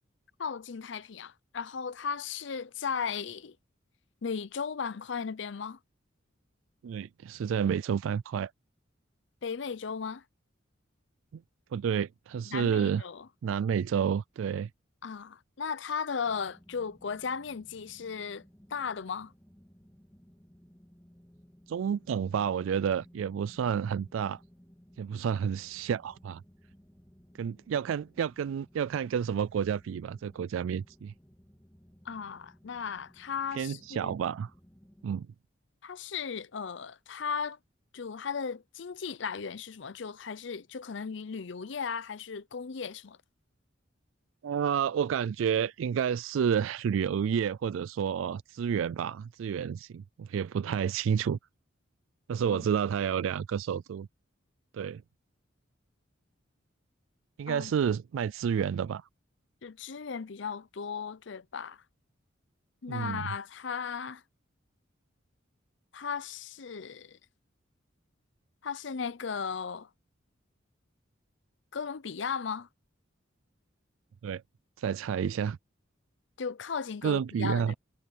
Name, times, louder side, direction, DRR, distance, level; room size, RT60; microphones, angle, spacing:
voice 1, 0.4-3.6 4.2-5.8 9.4-10.2 12.5-13.3 15.0-18.4 18.7-19.3 32.0-34.1 35.8-37.6 37.9-43.2 52.5-52.6 57.5-57.8 59.6-61.8 62.8-64.2 65.9-67.2 68.6-69.9 71.7-72.7 76.4-77.7, left 6 dB, 65° left, 0.6 m, -36 dB
voice 2, 6.8-8.5 11.3-11.4 11.7-13.0 13.4-14.7 21.7-24.4 25.0-26.4 27.4-31.1 33.5-34.5 35.0-35.3 44.4-51.4 52.3-54.1 54.7-55.0 57.4-59.1 62.9-63.3 74.2-74.4 74.8-75.6 77.0-77.7, right 7 dB, 85° right, 0.3 m, -30 dB
sound 1, 16.2-35.1, equal, 10° left, 2.5 m, -58 dB
head